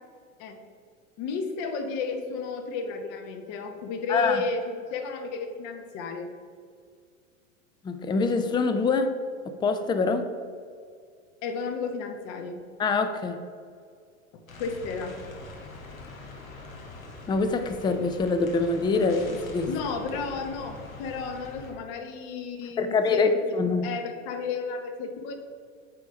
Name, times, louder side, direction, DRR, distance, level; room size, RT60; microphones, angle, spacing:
voice 1, 1.2-6.3 11.4-12.6 14.3-15.2 19.7-23.2 23.8-25.3, left 4 dB, 50° left, 6 dB, 1.2 m, -33 dB
voice 2, 4.1-4.4 7.8-9.2 9.6-10.3 12.8-13.4 17.3-19.7 22.8-23.9, left 4 dB, 10° left, 9 dB, 0.4 m, -25 dB
sound 1, 14.5-21.7, left 2 dB, 90° left, 1.5 m, -43 dB
8.9 x 3.6 x 5.2 m, 2.1 s
hypercardioid pair, 95°, 40 cm